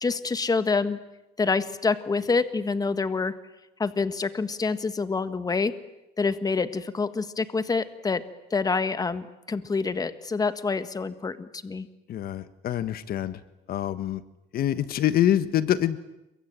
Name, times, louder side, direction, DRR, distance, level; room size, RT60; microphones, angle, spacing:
voice 1, 0.0-1.0 1.4-3.3 3.8-5.7 6.2-8.2 8.5-11.9, left 4 dB, 20° left, 11 dB, 1.5 m, -27 dB
voice 2, 12.1-13.4 13.7-14.2 14.5-16.0, left 11 dB, 65° left, 13 dB, 1.4 m, -25 dB
28.5 x 23.5 x 9.0 m, 0.93 s
cardioid pair, 110°, 17 cm